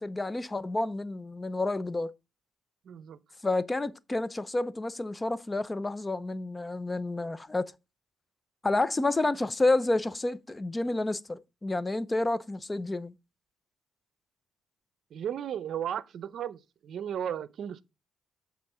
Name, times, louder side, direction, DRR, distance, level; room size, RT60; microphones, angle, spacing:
voice 1, 0.0-2.1 3.4-7.7 8.6-13.1, left 2 dB, 20° left, 0.6 m, -29 dB
voice 2, 2.9-3.2 15.1-17.8, right 9 dB, 65° right, 0.6 m, -35 dB
7.4 x 3.7 x 5.8 m
cardioid pair, 90°, 0 cm